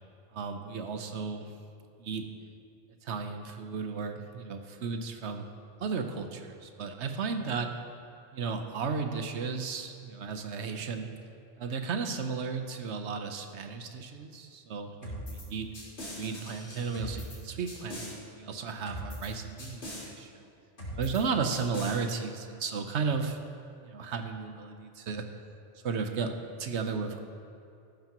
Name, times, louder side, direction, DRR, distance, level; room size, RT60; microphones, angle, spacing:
voice 1, 0.3-1.5 2.0-2.3 3.0-5.4 5.8-7.7 8.3-11.1 11.6-15.7 16.2-20.5 20.9-23.4 23.8-25.3 25.8-27.2, right 5 dB, 70° right, 6 dB, 1.1 m, -34 dB
sound 1, 15.0-15.5 15.7-17.4 17.7-18.1 18.9-19.3 19.6-20.1 20.8-21.2 21.5-22.0, equal, 65° left, 2.6 m, -40 dB
14.0 x 11.5 x 3.0 m, 2.6 s
omnidirectional pair, 1.2 m